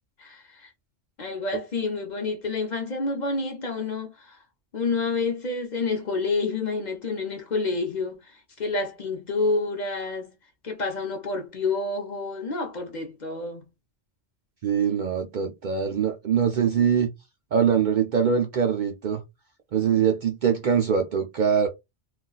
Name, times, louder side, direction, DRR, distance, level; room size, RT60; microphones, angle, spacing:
voice 1, 0.2-0.7 1.2-4.4 4.7-10.3 10.6-13.7, left 3 dB, 45° left, 0.7 m, -29 dB
voice 2, 14.6-17.1 17.5-19.2 19.7-21.7, right 7 dB, 60° right, 0.5 m, -23 dB
2.4 x 2.2 x 3.9 m
omnidirectional pair, 1.2 m